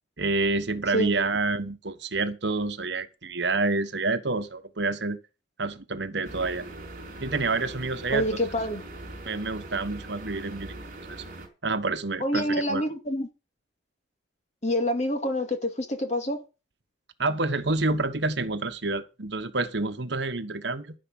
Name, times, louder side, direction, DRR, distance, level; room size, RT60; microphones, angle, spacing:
voice 1, 0.2-5.2 5.6-6.6 7.2-8.3 9.3-10.7 11.1-11.2 11.6-12.8 17.2-20.9, right 3 dB, 65° right, 1.3 m, -28 dB
sound 1, 6.2-11.5, right 2 dB, 45° right, 4.5 m, -41 dB
voice 2, 8.1-8.8 12.2-13.3 14.6-16.4, equal, 35° left, 2.3 m, -27 dB
11.5 x 11.0 x 5.4 m
head